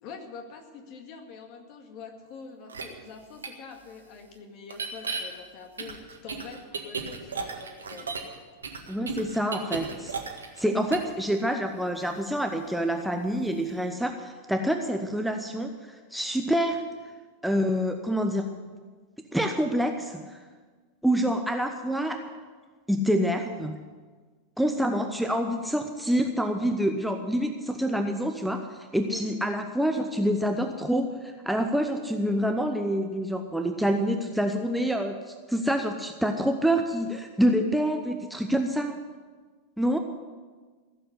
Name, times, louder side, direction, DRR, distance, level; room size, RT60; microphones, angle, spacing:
voice 1, 0.0-8.1 29.1-29.2, left 5 dB, 40° left, 4 dB, 2.0 m, -45 dB
sound 1, 2.7-2.8 3.4-3.5 4.7-5.2 5.8-8.3 8.6-10.6 10.9-11.1, right 5 dB, 70° right, 1.7 m, -34 dB
voice 2, 8.9-10.1 10.6-16.8 17.4-18.5 19.3-20.4 21.0-22.4 22.9-23.8 24.6-39.0 39.8-40.0, equal, ahead, 5 dB, 0.9 m, -27 dB
15.5 x 7.8 x 9.9 m, 1.5 s
figure-of-eight pair, 90°, 0 cm